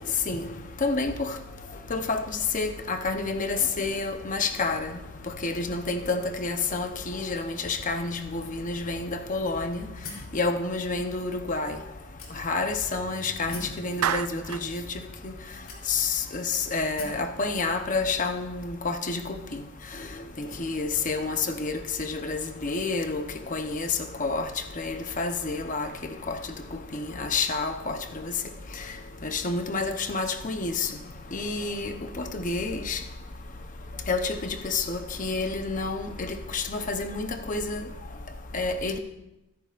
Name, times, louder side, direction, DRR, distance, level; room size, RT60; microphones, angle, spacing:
voice 1, 0.8-1.3 1.9-2.2 2.5-4.9 5.4-9.8 10.3-11.8 12.4-14.8 15.2-15.3 15.9-19.2 20.4-23.2 23.5-23.9 24.2-24.5 24.8-25.9 26.3-26.4 26.9-28.0 28.2-28.3 29.2-30.9 31.3-33.0 34.1-37.8 38.5-39.0, left 3 dB, 35° left, 7 dB, 0.8 m, -29 dB
sound 1, 10.0-10.4 11.2-11.3 12.2-12.7 13.5-13.8 14.8-14.9 15.7-16.2 17.0-17.3, left 4 dB, 65° left, 3.2 m, -41 dB
Clapping, 14.0-14.7, right 9 dB, 85° right, 0.4 m, -28 dB
22.5 x 10.5 x 2.5 m, 0.93 s
head